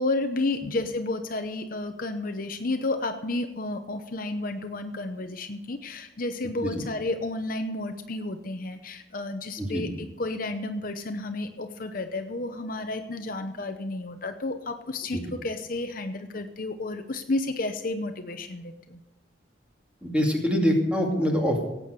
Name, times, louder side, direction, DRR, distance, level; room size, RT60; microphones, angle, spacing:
voice 1, 0.0-19.0, left 2 dB, 45° left, 7 dB, 0.8 m, -31 dB
voice 2, 9.6-9.9 15.1-15.2 20.0-21.6, equal, 5° right, 0 dB, 2.5 m, -24 dB
17.5 x 8.5 x 6.7 m, 0.97 s
head